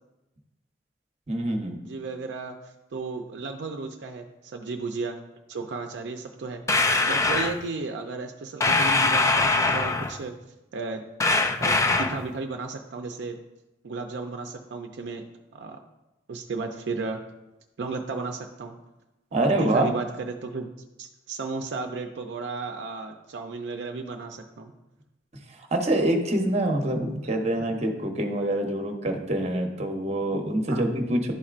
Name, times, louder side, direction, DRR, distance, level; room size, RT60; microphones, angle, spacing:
voice 1, 1.3-1.8 19.3-19.9 25.6-31.3, right 1 dB, 35° right, 3 dB, 0.9 m, -25 dB
voice 2, 1.9-5.2 5.5-10.3 10.7-11.0 11.6-13.4 13.8-15.2 15.5-15.8 16.3-17.2 17.8-18.8 19.3-20.7 21.0-24.7 30.7-30.9, right 3 dB, 70° right, 4 dB, 0.4 m, -34 dB
sound 1, 6.7-7.6 8.6-10.2 11.2-12.3, left 3 dB, 15° left, 0.3 m, -22 dB
11.0 x 4.2 x 2.5 m, 0.98 s
head